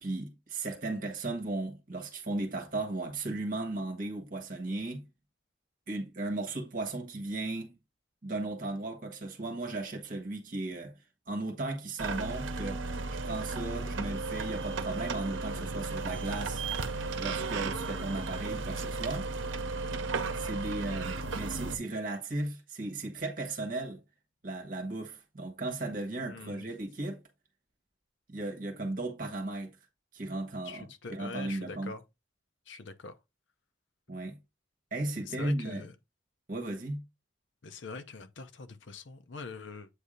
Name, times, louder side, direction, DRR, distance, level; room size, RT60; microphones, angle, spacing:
voice 1, 0.0-5.0 5.9-7.7 8.2-10.9 11.3-12.8 13.2-16.6 17.2-19.3 20.3-24.0 24.4-27.2 28.3-29.7 30.1-31.9 34.1-34.4 34.9-35.9 36.5-37.0, right 2 dB, 45° right, 1.3 m, -36 dB
sound 1, 12.0-21.8, right 3 dB, 80° right, 0.8 m, -35 dB
voice 2, 26.2-26.7 30.6-32.0 32.7-33.1 35.2-35.9 37.6-39.9, left 4 dB, 70° left, 0.7 m, -43 dB
8.1 x 2.7 x 5.0 m
head